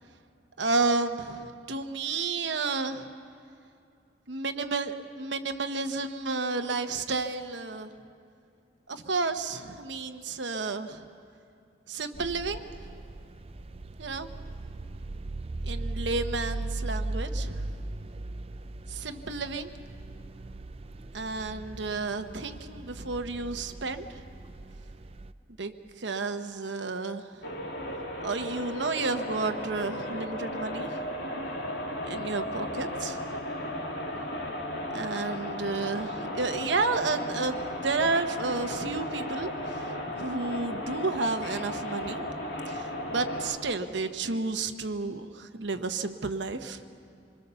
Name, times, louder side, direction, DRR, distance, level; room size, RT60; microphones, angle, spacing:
voice 1, 0.6-3.1 4.3-7.9 8.9-11.0 11.9-12.6 14.0-14.3 15.6-17.6 18.9-19.7 21.1-24.2 25.6-25.7 26.0-27.2 28.2-30.9 32.1-33.2 34.9-39.5 40.1-42.2 42.7-46.8, right 3 dB, 75° right, 7 dB, 1.1 m, -31 dB
sound 1, 12.1-25.3, right 2 dB, 30° right, 0.5 m, -38 dB
sound 2, 27.4-43.5, left 1 dB, 80° left, 2.7 m, -35 dB
26.0 x 21.5 x 6.9 m, 2.5 s
head